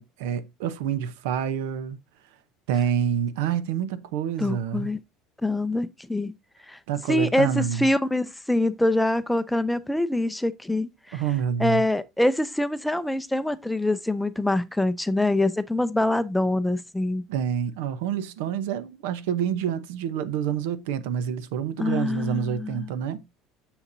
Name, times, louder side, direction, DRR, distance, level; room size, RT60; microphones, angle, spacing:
voice 1, 0.0-2.0 2.7-4.9 6.9-7.9 11.1-11.8 17.3-23.2, right 8 dB, 90° right, 0.8 m, -27 dB
voice 2, 4.4-5.0 5.4-6.3 6.7-6.8 7.1-11.2 11.6-17.2 21.8-22.9, left 1 dB, 5° left, 0.4 m, -25 dB
7.0 x 6.9 x 2.6 m
cardioid pair, 155°, 0 cm